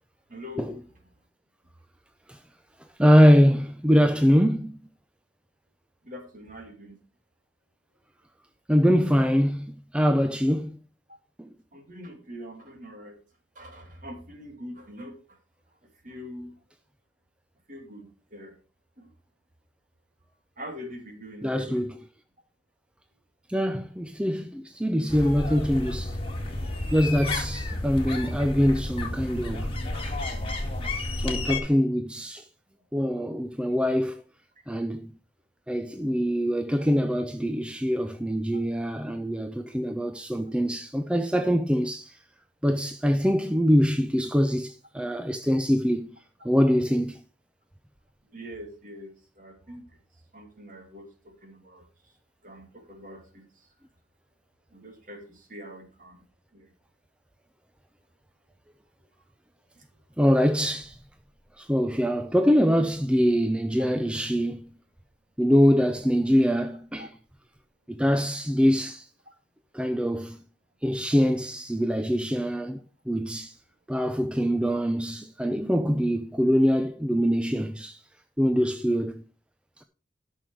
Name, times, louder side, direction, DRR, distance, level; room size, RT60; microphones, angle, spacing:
voice 1, 0.3-0.8 6.0-7.0 11.7-13.2 13.6-15.4 16.0-16.5 17.7-18.5 19.0-19.1 20.6-21.8 38.5-38.6 48.3-49.8 50.3-51.9 52.4-53.5 54.7-56.2 56.5-56.7 63.8-63.9 67.0-67.1, equal, 45° right, 2.5 m, -43 dB
voice 2, 3.0-4.8 8.7-10.8 11.4-11.5 21.4-22.0 23.5-26.2 26.9-29.7 31.2-32.5 32.9-34.2 34.7-35.1 35.7-42.2 42.6-46.1 46.4-47.2 60.2-61.0 61.6-64.7 65.4-67.1 67.9-69.1 69.7-70.4 70.8-72.8 73.1-73.6 73.9-78.0 78.4-79.2 79.8-79.9, equal, 5° right, 0.5 m, -23 dB
sound 1, 25.1-31.6, left 2 dB, 30° left, 2.0 m, -31 dB
12.5 x 6.3 x 4.7 m
head